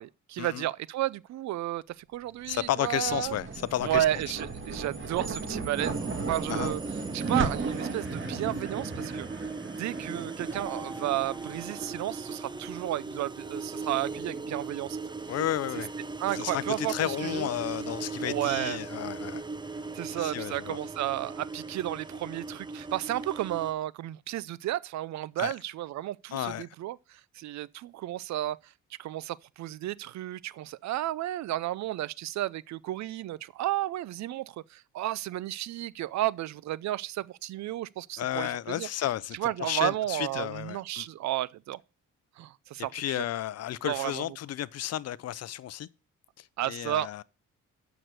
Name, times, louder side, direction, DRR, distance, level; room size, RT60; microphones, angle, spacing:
voice 1, 0.0-3.4 3.8-6.8 7.1-9.3 9.8-15.0 16.2-17.5 18.2-18.8 19.9-28.7 29.0-38.9 39.3-41.8 42.4-43.2 43.8-44.3 46.6-47.1, right 14 dB, 65° right, 0.5 m, -32 dB
sound 1, 2.3-12.9, right 4 dB, 40° right, 2.2 m, -37 dB
voice 2, 2.5-4.0 6.5-6.7 15.3-15.9 16.3-19.4 20.2-20.8 25.4-25.5 26.3-26.7 38.2-41.0 42.9-45.9 46.4-47.2, left 12 dB, 55° left, 0.6 m, -32 dB
sound 2, 5.8-23.7, right 3 dB, 15° right, 0.6 m, -38 dB
Keyboard (musical), 10.5-13.1, left 2 dB, ahead, 1.0 m, -49 dB
7.7 x 6.1 x 6.6 m
cardioid pair, 90°, 30 cm